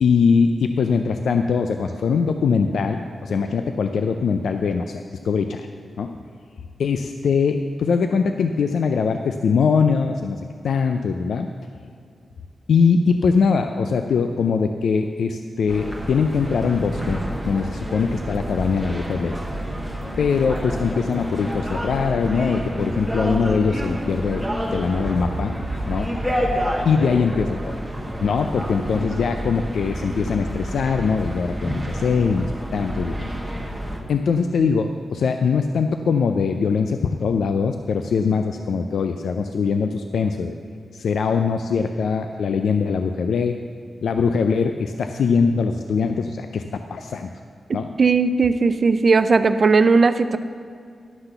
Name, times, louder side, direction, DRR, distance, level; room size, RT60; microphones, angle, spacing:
voice 1, 0.0-5.7 6.0-6.1 6.8-10.4 10.6-11.5 12.7-17.2 17.5-19.4 20.2-24.4 24.7-25.6 25.9-26.1 26.9-27.7 28.2-33.6 34.1-40.5 40.9-43.6 44.0-47.3 47.7-47.9, left 5 dB, 80° left, 6 dB, 0.4 m, -22 dB
sound 1, 15.7-34.0, equal, 5° right, 1.2 m, -28 dB
voice 2, 48.0-50.4, right 4 dB, 40° right, 11 dB, 0.4 m, -17 dB
11.5 x 5.9 x 6.7 m, 2.4 s
wide cardioid pair, 155°, 0 cm